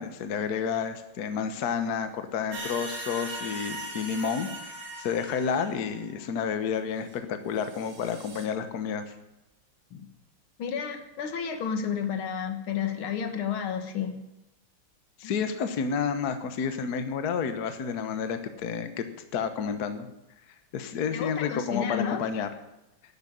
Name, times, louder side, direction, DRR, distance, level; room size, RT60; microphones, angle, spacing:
voice 1, 0.0-9.1 15.2-19.0 19.3-20.1 20.7-22.5, left 6 dB, 55° left, 9 dB, 1.5 m, -30 dB
sound 1, 2.5-6.2 7.1-7.2 7.6-8.5, right 1 dB, 60° right, 2.7 m, -40 dB
voice 2, 10.6-14.2 15.2-15.3 21.1-22.2, left 7 dB, 80° left, 8 dB, 2.2 m, -31 dB
11.5 x 8.1 x 10.0 m, 0.94 s
omnidirectional pair, 2.3 m